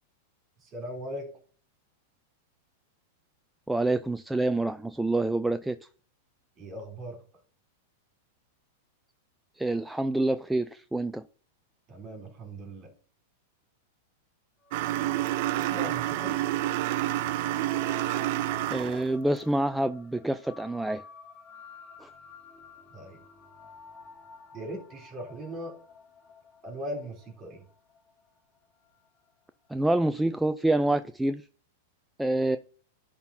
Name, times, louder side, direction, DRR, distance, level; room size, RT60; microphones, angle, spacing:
voice 1, 0.6-1.4 6.6-7.2 11.9-12.9 15.6-16.4 22.9-23.2 24.5-25.8 26.6-27.6, equal, 30° right, 3 dB, 3.5 m, -39 dB
voice 2, 3.7-5.8 9.6-11.2 18.7-21.0 22.0-22.1 29.7-31.5 32.2-32.6, right 2 dB, 5° right, 10 dB, 0.3 m, -27 dB
sound 1, 14.6-29.3, left 4 dB, 25° left, 2.0 m, -51 dB
sound 2, 14.7-19.1, right 15 dB, 55° right, 0.5 m, -29 dB
10.5 x 3.7 x 4.1 m, 0.40 s
supercardioid pair, 135°, 0 cm